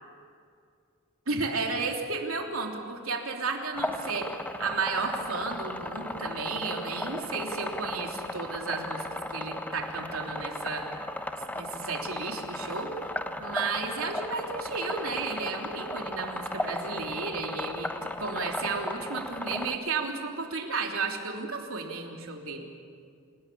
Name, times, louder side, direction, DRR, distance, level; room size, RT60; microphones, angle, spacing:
voice 1, 1.3-4.3 4.6-10.9 11.5-12.9 13.4-17.9 18.2-22.7, right 4 dB, 85° right, 2 dB, 3.3 m, -33 dB
sound 1, 3.8-19.8, left 1 dB, 10° left, 1.0 m, -36 dB
28.5 x 18.5 x 8.6 m, 2.3 s
head